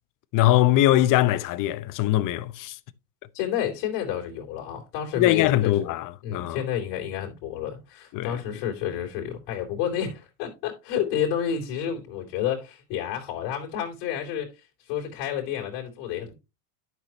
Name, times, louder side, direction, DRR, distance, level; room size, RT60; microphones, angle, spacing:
voice 1, 0.3-2.8 5.1-6.6 8.1-8.4, left 14 dB, 40° left, 0.8 m, -22 dB
voice 2, 3.3-5.9 6.2-16.3, left 9 dB, 55° left, 3.3 m, -30 dB
11.0 x 6.0 x 2.9 m
supercardioid pair, 115°, 48 cm